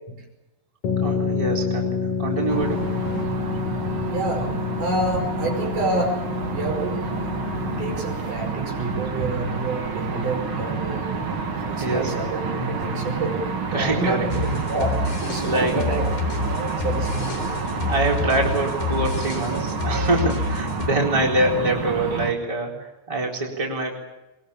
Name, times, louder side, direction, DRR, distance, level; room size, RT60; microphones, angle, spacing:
sound 1, 0.8-8.3, left 6 dB, 50° left, 2.2 m, -28 dB
voice 1, 1.0-2.8 11.8-12.1 13.7-14.3 15.4-15.7 17.6-24.0, right 2 dB, 10° right, -1 dB, 3.9 m, -25 dB
sound 2, 2.5-22.3, right 4 dB, 40° right, 2.4 m, -29 dB
voice 2, 4.1-6.2 6.5-7.1 7.8-11.1 11.7-13.5 13.7-16.0 16.4-16.5 16.8-17.5 20.9-21.0, right 2 dB, 65° right, 2 dB, 7.0 m, -28 dB
sound 3, 14.3-20.9, left 3 dB, 80° left, 4.7 m, -28 dB
22.5 x 22.5 x 8.8 m, 1.0 s
omnidirectional pair, 4.0 m